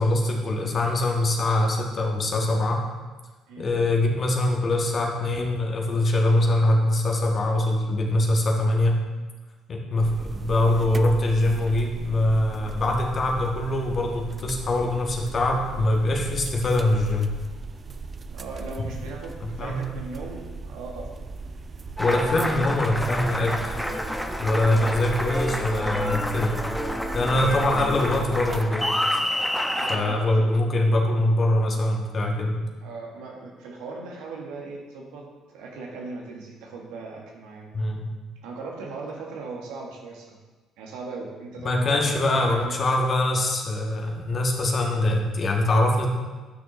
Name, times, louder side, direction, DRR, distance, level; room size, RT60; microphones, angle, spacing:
voice 1, 0.0-2.8 3.6-9.0 9.7-17.3 18.8-18.9 19.4-19.8 22.0-23.8 24.4-26.5 27.1-28.9 29.9-32.6 37.7-38.1 41.6-46.1, left 1 dB, 45° left, 0 dB, 1.6 m, -23 dB
sound 1, 10.0-28.6, right 4 dB, 40° right, 0.5 m, -37 dB
voice 2, 18.3-21.1 24.7-25.0 29.7-30.5 32.8-37.7 38.4-40.4 40.8-43.0, right 3 dB, 75° right, 0 dB, 1.4 m, -38 dB
Applause, 22.0-30.0, equal, 5° left, 0.8 m, -29 dB
10.5 x 6.3 x 3.1 m, 1.3 s
hypercardioid pair, 55°, 0 cm